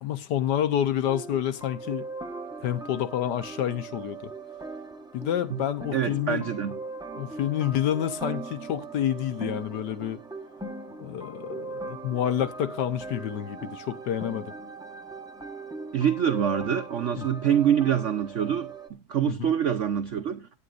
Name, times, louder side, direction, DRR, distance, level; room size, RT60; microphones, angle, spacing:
voice 1, 0.0-2.1 2.6-4.3 5.1-6.5 7.2-10.2 11.0-14.5 17.2-17.3 19.3-19.5, left 10 dB, 65° left, 1.3 m, -28 dB
sound 1, 1.1-18.9, right 3 dB, 5° right, 0.7 m, -40 dB
voice 2, 5.9-6.8 15.9-20.6, right 9 dB, 80° right, 0.6 m, -25 dB
17.5 x 9.7 x 2.5 m
omnidirectional pair, 2.2 m